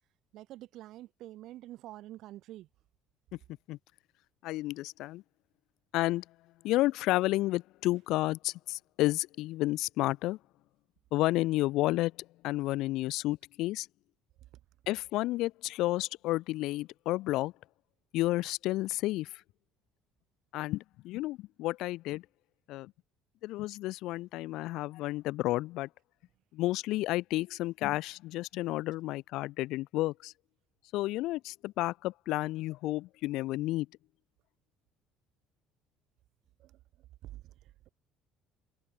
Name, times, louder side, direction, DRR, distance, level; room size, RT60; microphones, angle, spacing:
voice 1, 0.3-2.7 36.6-37.9, right 15 dB, 70° right, 2.0 m, -48 dB
voice 2, 4.4-5.2 5.9-6.2 6.6-10.4 11.1-13.9 14.9-17.5 18.1-19.4 20.5-22.3 22.7-22.9 23.4-25.9 26.5-30.3 30.9-33.9, left 17 dB, 75° left, 0.3 m, -31 dB
supercardioid pair, 85°, 0 cm